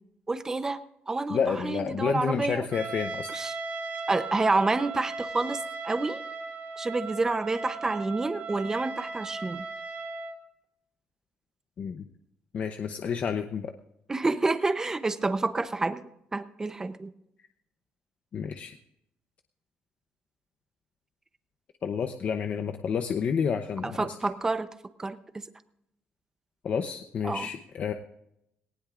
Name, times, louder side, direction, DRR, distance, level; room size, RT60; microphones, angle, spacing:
voice 1, 0.3-0.8 1.1-2.6 3.3-3.5 4.1-6.2 6.8-9.6 14.1-16.0 16.3-17.1 23.8-24.7 25.0-25.4 27.2-27.5, right 3 dB, 15° right, 11 dB, 0.8 m, -28 dB
voice 2, 1.3-3.3 11.8-12.1 12.5-13.7 18.3-18.8 21.8-24.1 26.6-27.9, left 6 dB, 45° left, 6 dB, 0.8 m, -30 dB
Trumpet, 2.7-10.4, right 4 dB, 45° right, 3.6 m, -37 dB
19.0 x 18.5 x 2.5 m, 0.80 s
cardioid pair, 155°, 4 cm